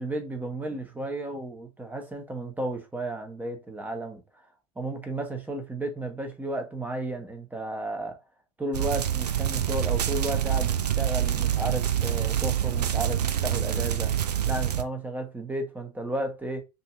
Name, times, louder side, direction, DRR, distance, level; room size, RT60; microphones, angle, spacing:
voice 1, 0.0-4.2 4.8-8.2 8.6-14.1 14.5-16.6, right 1 dB, 10° right, 0.9 m, -33 dB
sound 1, 8.7-14.8, right 10 dB, 75° right, 0.4 m, -26 dB
5.2 x 2.7 x 2.4 m
figure-of-eight pair, 85°, 21 cm